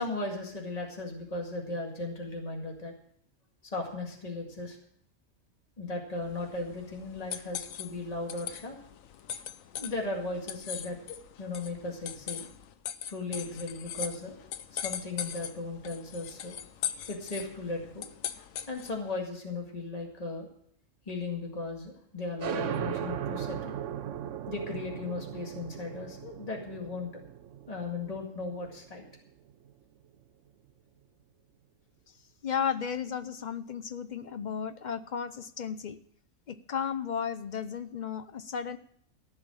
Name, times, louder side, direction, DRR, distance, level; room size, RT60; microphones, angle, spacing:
voice 1, 0.0-2.9 3.7-4.8 5.8-8.8 9.7-12.5 13.1-14.4 14.7-16.6 17.1-18.1 18.7-20.5 21.1-23.7 24.5-27.2 27.7-29.0, left 3 dB, 30° left, 1 dB, 2.1 m, -36 dB
sound 1, 6.2-19.1, left 9 dB, 85° left, 1.1 m, -40 dB
sound 2, 22.4-29.7, right 10 dB, 70° right, 1.0 m, -38 dB
voice 2, 32.4-36.0 36.5-38.8, left 7 dB, 50° left, 11 dB, 0.5 m, -34 dB
14.5 x 5.8 x 8.6 m, 0.65 s
omnidirectional pair, 1.4 m